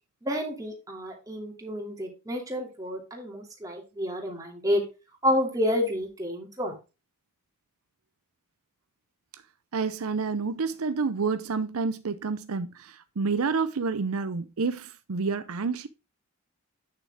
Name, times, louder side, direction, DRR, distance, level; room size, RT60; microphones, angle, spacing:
voice 1, 0.2-4.8 5.2-6.8, left 1 dB, 15° right, 2.5 m, -29 dB
voice 2, 9.7-15.9, right 4 dB, 75° right, 0.6 m, -29 dB
9.0 x 6.7 x 3.5 m
head